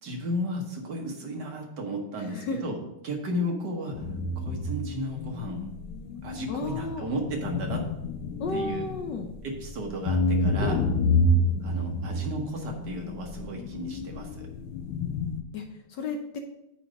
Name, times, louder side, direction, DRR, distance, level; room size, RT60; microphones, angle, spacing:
voice 1, 0.0-2.8 3.0-4.0 4.4-5.7 6.2-7.8 8.5-8.8 9.4-10.8 11.6-14.5, equal, 60° right, 1 dB, 1.7 m, -34 dB
voice 2, 2.2-2.8 6.5-7.1 8.4-9.3 10.6-10.9 15.5-15.6 15.9-16.4, left 3 dB, 70° left, 5 dB, 1.2 m, -33 dB
sound 1, 3.9-15.4, left 1 dB, 85° left, 1.5 m, -29 dB
8.9 x 3.3 x 6.2 m, 0.90 s
omnidirectional pair, 2.3 m